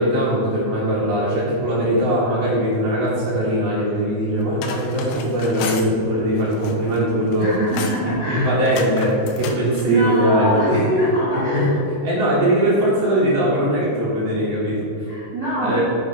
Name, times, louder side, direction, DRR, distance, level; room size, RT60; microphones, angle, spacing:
voice 1, 0.0-7.5 8.1-10.9 11.3-15.1 15.6-15.8, equal, 60° right, -7 dB, 3.4 m, -20 dB
sound 1, 4.4-5.9 6.4-7.0 7.3-8.1 8.7-9.9, left 6 dB, 85° left, 3.1 m, -32 dB
voice 2, 7.4-8.5 9.9-11.7 15.1-15.8, right 1 dB, 35° right, -10 dB, 1.9 m, -23 dB
8.8 x 6.5 x 5.2 m, 2.8 s
omnidirectional pair, 5.2 m